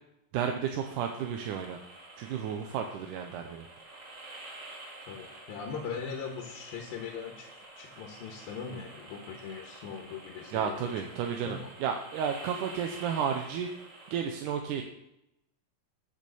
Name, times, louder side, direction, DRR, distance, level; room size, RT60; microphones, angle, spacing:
voice 1, 0.3-1.8 2.2-3.7 10.5-13.7 14.1-14.8, right 7 dB, 75° right, 4 dB, 2.1 m, -32 dB
sound 1, 0.8-14.2, right 2 dB, 35° right, 2.1 m, -49 dB
voice 2, 5.1-10.9 11.4-11.7, left 6 dB, 90° left, 2 dB, 3.0 m, -40 dB
8.4 x 6.5 x 7.0 m, 0.84 s
omnidirectional pair, 4.0 m